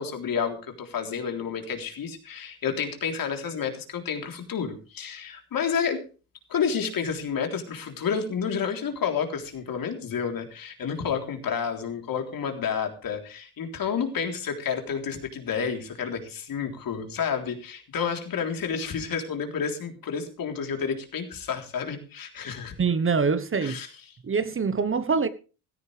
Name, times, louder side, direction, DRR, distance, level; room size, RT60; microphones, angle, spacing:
voice 1, 0.0-6.0 6.5-22.7 23.6-23.9, left 6 dB, 60° left, 3.6 m, -30 dB
voice 2, 22.8-23.8 24.2-25.3, right 5 dB, 30° right, 1.1 m, -24 dB
16.5 x 14.0 x 3.3 m
cardioid pair, 85°, 39 cm